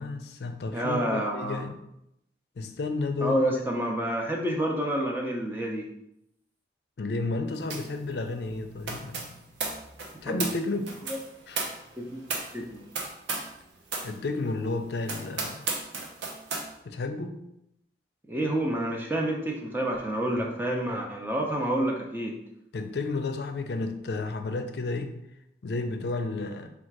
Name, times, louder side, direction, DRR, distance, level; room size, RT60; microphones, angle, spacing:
voice 1, 0.0-1.7 2.6-3.4 7.0-9.4 10.2-10.9 11.5-11.6 14.0-15.6 16.8-17.4 22.7-25.1 25.6-26.7, left 3 dB, 70° left, 7 dB, 0.4 m, -32 dB
voice 2, 0.7-1.6 3.2-5.9 10.2-10.8 11.1-11.2 12.0-12.9 18.3-22.4, right 1 dB, 10° right, 0 dB, 0.5 m, -29 dB
sound 1, 7.7-13.6 13.9-14.1 14.6-14.7 15.0-16.7, right 4 dB, 90° right, 0.7 m, -35 dB
3.7 x 2.4 x 4.5 m, 0.80 s
head